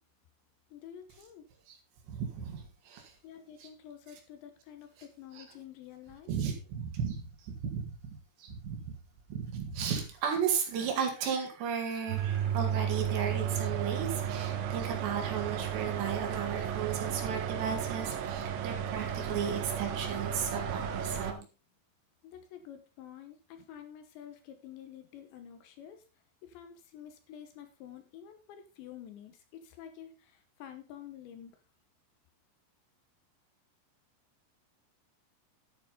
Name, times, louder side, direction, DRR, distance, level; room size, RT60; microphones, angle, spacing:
voice 1, 0.7-1.4 3.2-6.3 22.2-26.0 26.4-31.6, left 9 dB, 75° left, 8 dB, 3.1 m, -49 dB
voice 2, 2.1-3.1 3.6-3.7 5.3-5.4 6.3-7.9 8.4-8.9 9.3-21.5, right 7 dB, 65° right, 3 dB, 3.9 m, -35 dB
sound 1, 12.1-21.3, right 8 dB, 80° right, 3.7 m, -33 dB
11.5 x 8.6 x 3.9 m, 0.31 s
omnidirectional pair, 5.8 m